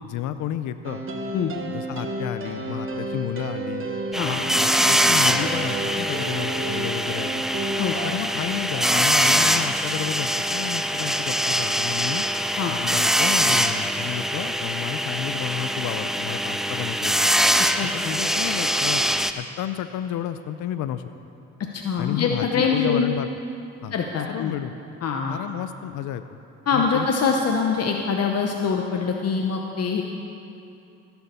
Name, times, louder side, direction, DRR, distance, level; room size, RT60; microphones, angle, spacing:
voice 1, 0.0-1.1 1.7-3.9 4.2-7.4 8.0-12.2 12.7-17.3 17.8-19.0 19.4-21.0 22.0-23.3 23.8-24.0 24.3-24.7 25.3-26.2 26.7-27.1, left 11 dB, 75° left, 11 dB, 0.5 m, -31 dB
sound 1, 0.8-9.1, right 2 dB, 45° right, 1.2 m, -32 dB
sound 2, 4.1-19.3, equal, ahead, 0.5 m, -23 dB
voice 2, 17.6-18.2 21.7-23.1 23.9-24.5 25.0-25.4 26.7-30.0, left 5 dB, 55° left, 2 dB, 0.9 m, -24 dB
15.5 x 7.1 x 6.8 m, 2.7 s
cardioid pair, 90°, 30 cm